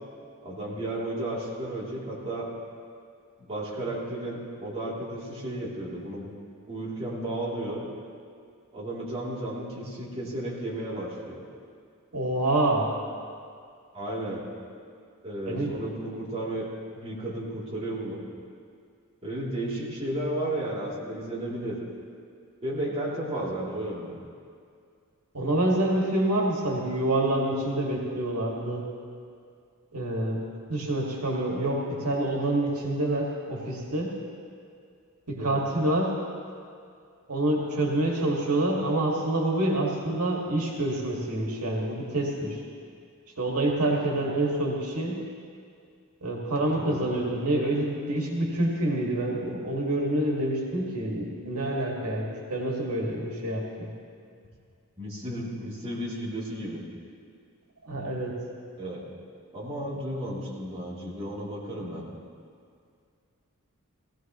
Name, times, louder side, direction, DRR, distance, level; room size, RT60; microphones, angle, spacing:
voice 1, 0.4-2.5 3.5-6.3 6.7-7.8 8.7-11.4 13.9-14.4 15.2-16.7 16.9-18.2 19.2-21.8 22.6-24.2 35.4-35.6 46.7-47.1 55.0-56.8 58.8-59.0 59.5-62.0, right 1 dB, 25° right, -7 dB, 3.1 m, -33 dB
voice 2, 12.1-12.9 15.5-15.7 25.3-28.8 29.9-30.4 30.7-34.1 35.3-36.1 37.3-42.6 43.4-45.2 46.2-53.9 57.8-58.3, right 1 dB, 90° right, -2 dB, 2.1 m, -27 dB
18.0 x 16.5 x 3.1 m, 2.3 s
head